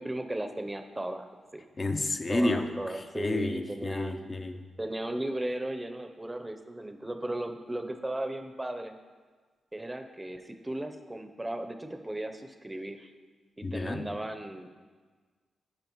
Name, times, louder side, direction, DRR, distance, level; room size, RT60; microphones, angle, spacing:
voice 1, 0.0-1.6 2.3-4.1 4.8-8.9 9.7-13.1 13.6-14.7, right 1 dB, 15° right, 7 dB, 0.7 m, -36 dB
voice 2, 1.8-2.7 3.1-4.6 13.6-14.1, left 2 dB, 40° left, 6 dB, 0.7 m, -30 dB
12.5 x 4.9 x 3.1 m, 1.4 s
cardioid pair, 55°, 0 cm